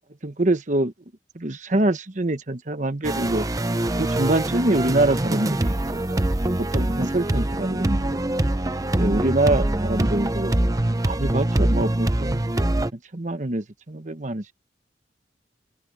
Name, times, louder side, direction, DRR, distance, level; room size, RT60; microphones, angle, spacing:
voice 1, 0.2-0.9 1.4-3.5 4.0-6.2 6.6-8.2 9.0-10.5 11.0-12.4 13.1-14.5, right 2 dB, 45° right, 1.1 m, -25 dB
sound 1, 3.0-12.9, right 1 dB, 20° right, 0.7 m, -24 dB
open air
head